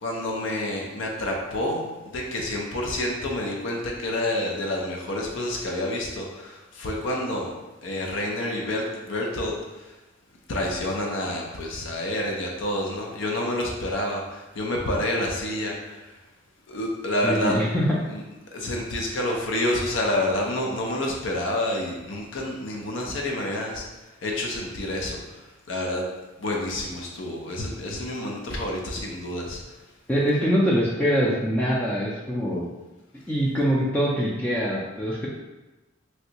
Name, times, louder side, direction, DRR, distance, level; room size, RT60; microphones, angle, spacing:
voice 1, 0.0-7.5 7.8-10.0 10.5-16.1 16.7-17.6 18.1-18.2 18.5-23.8 24.2-26.0 26.4-29.8, left 1 dB, 70° left, 0 dB, 0.5 m, -28 dB
voice 2, 17.2-18.0 30.1-32.7 33.3-35.3, equal, 10° left, -6 dB, 0.3 m, -23 dB
3.1 x 2.6 x 2.8 m, 1.1 s
head